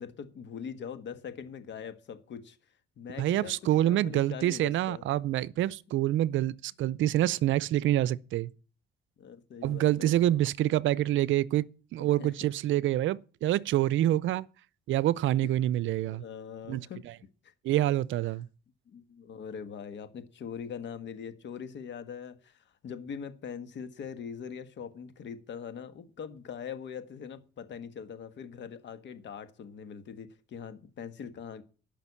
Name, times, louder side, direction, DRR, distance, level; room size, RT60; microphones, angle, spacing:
voice 1, 0.0-2.6 3.0-5.0 9.2-10.1 12.0-12.5 14.1-14.2 16.1-17.1 17.4-17.5 18.9-31.6, left 7 dB, 65° left, 1.6 m, -42 dB
voice 2, 3.2-8.5 9.6-11.6 11.9-14.4 14.9-16.2 16.7-16.8 17.6-18.5, right 13 dB, 75° right, 0.5 m, -26 dB
12.0 x 5.9 x 8.4 m
cardioid pair, 90°, 20 cm